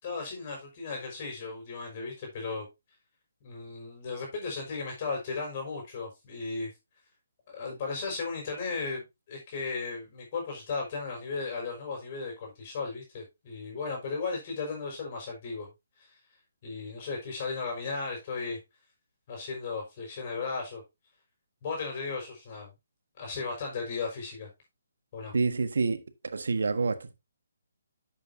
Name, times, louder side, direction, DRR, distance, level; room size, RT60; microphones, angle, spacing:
voice 1, 0.0-2.7 3.4-6.7 7.5-15.7 16.0-16.2 16.6-18.6 19.3-20.8 21.6-22.7 23.2-24.5 25.1-25.3, left 4 dB, 40° left, 5.7 m, -35 dB
voice 2, 25.3-27.2, right 4 dB, 70° right, 1.4 m, -28 dB
11.0 x 7.7 x 2.7 m
figure-of-eight pair, 145°, 0 cm